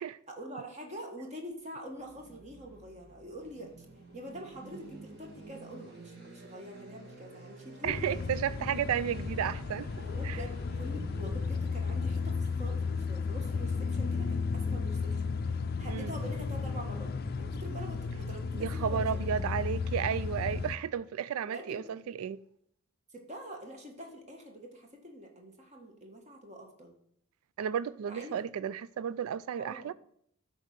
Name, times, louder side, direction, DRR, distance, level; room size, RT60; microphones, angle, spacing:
voice 1, 0.3-3.8 4.1-8.0 10.0-15.2 15.8-19.2 21.5-21.9 23.1-26.9 28.1-28.3 29.6-29.9, equal, 30° right, 1.5 m, -45 dB
sound 1, 1.9-15.8, right 2 dB, 50° right, 2.0 m, -51 dB
sound 2, 7.8-20.8, left 4 dB, 45° left, 0.5 m, -34 dB
voice 2, 7.8-9.9 10.2-10.4 15.9-16.1 18.5-22.4 27.6-29.9, right 8 dB, 80° right, 0.3 m, -33 dB
12.0 x 4.1 x 6.6 m
head